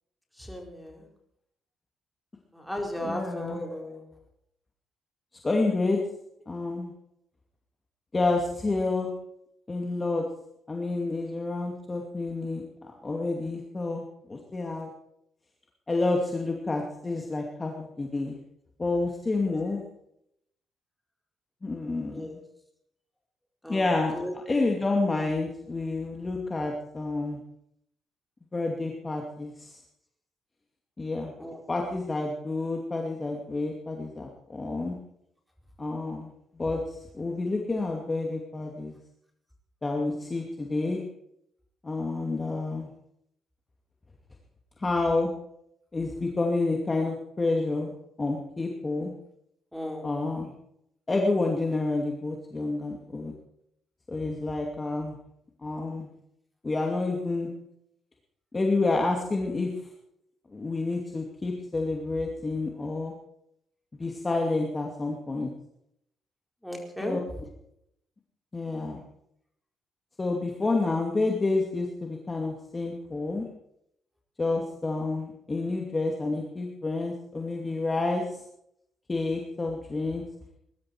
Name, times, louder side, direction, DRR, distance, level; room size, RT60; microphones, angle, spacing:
voice 1, 0.4-1.1 2.5-4.0 19.5-19.7 22.1-22.4 23.6-24.4 31.4-31.6 49.7-50.1 66.6-67.2, left 1 dB, 5° left, 0 dB, 4.5 m, -36 dB
voice 2, 3.0-3.6 5.4-6.0 6.5-6.9 8.1-9.1 9.7-10.2 10.7-14.0 14.3-14.9 15.9-18.4 18.8-19.8 21.6-22.4 23.7-27.4 28.5-29.8 31.0-31.3 31.7-35.0 35.8-36.3 36.6-36.8 37.1-39.0 39.8-41.0 41.8-42.9 44.8-45.3 45.9-47.9 48.2-49.1 50.0-50.5 51.1-53.3 54.1-55.1 55.6-56.1 56.6-57.5 58.5-59.7 60.5-63.1 64.0-65.5 67.0-67.2 68.5-69.0 70.2-73.5 74.4-78.2 79.1-80.2, left 3 dB, 25° left, 1 dB, 2.4 m, -29 dB
20.5 x 12.5 x 4.6 m, 0.75 s
cardioid pair, 90°, 0 cm